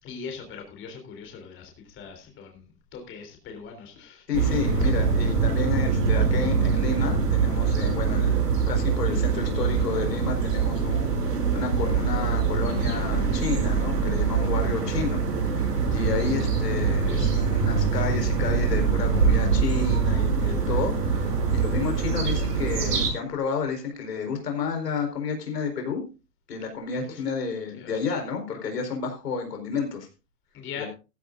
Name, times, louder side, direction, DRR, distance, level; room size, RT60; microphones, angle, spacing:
voice 1, 0.0-4.9 14.7-14.9 16.0-16.1 27.0-27.2 27.7-27.9 30.5-30.9, left 6 dB, 25° left, 3 dB, 3.6 m, -39 dB
voice 2, 4.3-8.4 8.7-15.6 15.9-26.0 26.5-30.1 30.8-30.9, left 5 dB, 85° left, 3 dB, 4.7 m, -31 dB
sound 1, 4.3-23.1, right 5 dB, 80° right, 7.1 m, -24 dB
14.5 x 14.5 x 2.6 m, 0.30 s
hypercardioid pair, 135°, 47 cm